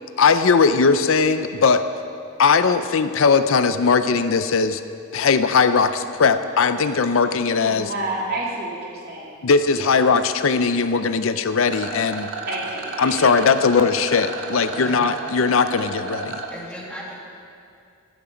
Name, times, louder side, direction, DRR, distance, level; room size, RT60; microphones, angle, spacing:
voice 1, 0.2-1.8 2.4-4.8 5.1-7.9 9.4-12.3 13.0-16.4, left 5 dB, 65° left, 11 dB, 0.5 m, -19 dB
voice 2, 7.6-9.4 9.7-10.1 12.5-13.4, right 2 dB, 45° right, -4 dB, 2.9 m, -30 dB
Rattle, 11.6-16.5, right 3 dB, 75° right, 1.4 m, -33 dB
voice 3, 13.2-13.5 14.7-15.0 16.5-17.1, equal, 5° left, -4 dB, 2.1 m, -37 dB
14.0 x 13.0 x 5.1 m, 2.5 s
head